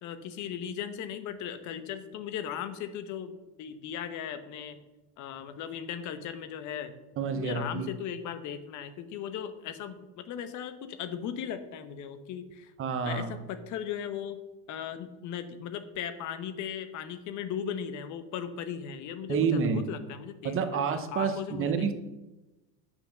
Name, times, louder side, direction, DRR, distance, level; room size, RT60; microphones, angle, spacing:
voice 1, 0.0-3.3 3.6-4.8 5.2-6.9 7.3-12.7 13.0-14.4 14.7-21.9, left 8 dB, 40° left, 10 dB, 1.0 m, -37 dB
voice 2, 7.2-7.9 12.8-13.3 19.3-19.8 20.4-21.9, right 6 dB, 25° right, 9 dB, 0.9 m, -28 dB
8.3 x 6.0 x 6.5 m, 1.0 s
supercardioid pair, 140°, 48 cm